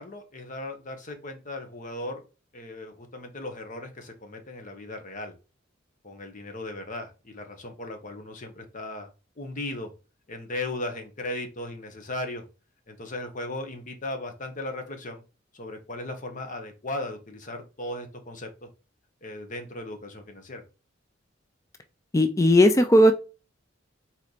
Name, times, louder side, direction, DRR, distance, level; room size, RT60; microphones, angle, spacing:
voice 1, 0.0-2.2 2.5-5.3 6.0-9.1 9.4-9.9 10.3-12.5 12.9-15.2 15.5-18.7 19.2-20.6, left 2 dB, 40° left, 6 dB, 1.0 m, -37 dB
voice 2, 22.1-23.1, left 1 dB, 15° left, 7 dB, 0.4 m, -17 dB
4.2 x 3.2 x 4.0 m, 0.31 s
head